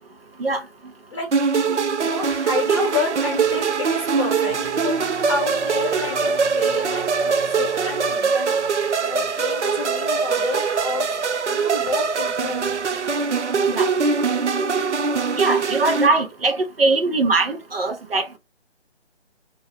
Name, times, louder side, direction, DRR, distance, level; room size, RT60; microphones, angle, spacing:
sound 1, 1.3-16.1, right 5 dB, 90° right, 0.5 m, -22 dB
voice 1, 1.9-8.6 9.1-11.1 11.5-12.7, left 5 dB, 25° left, 1.0 m, -30 dB
sound 2, 4.5-9.9, left 4 dB, 45° left, 0.7 m, -40 dB
voice 2, 15.3-18.4, right 3 dB, 60° right, 0.8 m, -21 dB
2.6 x 2.2 x 3.3 m
figure-of-eight pair, 150°, 34 cm